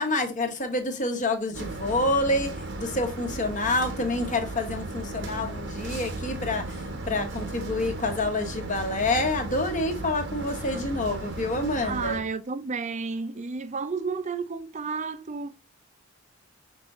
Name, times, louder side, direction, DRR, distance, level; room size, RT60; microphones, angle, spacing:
voice 1, 0.0-12.2, left 2 dB, 35° left, 1.1 m, -28 dB
sound 1, 1.5-12.2, right 2 dB, 55° right, 1.0 m, -36 dB
voice 2, 11.8-15.5, right 4 dB, 35° right, 0.5 m, -32 dB
5.9 x 3.6 x 2.5 m
head